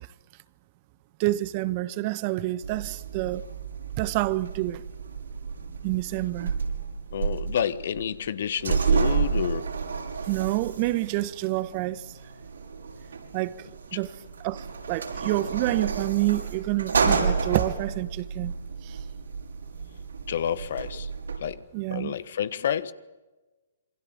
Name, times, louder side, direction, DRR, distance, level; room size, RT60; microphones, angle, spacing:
voice 1, 1.2-3.4 4.0-4.8 5.8-6.5 10.3-12.1 13.3-14.1 14.4-18.5 18.8-19.0 21.7-22.1, right 18 dB, 35° right, 1.3 m, -28 dB
Small hotel elevator doors, 2.6-21.4, right 5 dB, 75° right, 6.8 m, -31 dB
voice 2, 7.1-9.7 20.3-21.1 21.4-21.6 21.9-22.9, left 9 dB, 55° left, 1.4 m, -29 dB
27.5 x 24.5 x 8.8 m
figure-of-eight pair, 130°, 0 cm